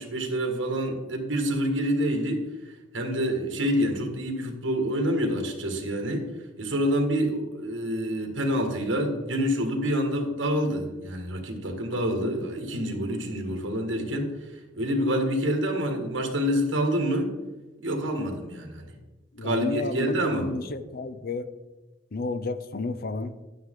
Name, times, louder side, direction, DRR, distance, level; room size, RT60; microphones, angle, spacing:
voice 1, 0.0-6.3 6.6-17.3 17.8-18.9 19.4-20.5, equal, 70° right, 3 dB, 1.9 m, -27 dB
voice 2, 19.3-21.5 22.1-23.3, left 3 dB, 50° left, 12 dB, 0.6 m, -31 dB
11.0 x 8.9 x 3.8 m, 1.1 s
head